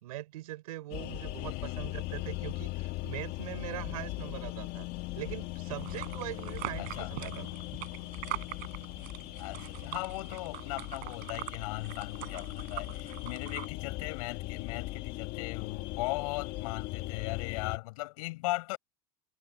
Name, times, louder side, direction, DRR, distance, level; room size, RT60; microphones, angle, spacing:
voice 1, 0.0-4.9 5.2-7.5 12.2-12.3, right 16 dB, 85° right, 5.4 m, -42 dB
sound 1, 0.9-17.8, left 19 dB, 55° left, 1.9 m, -39 dB
voice 2, 1.4-1.8 6.8-7.1 9.4-18.8, left 22 dB, 75° left, 7.4 m, -38 dB
sound 2, 5.8-13.7, right 23 dB, 55° right, 5.8 m, -43 dB
supercardioid pair, 115°, 19 cm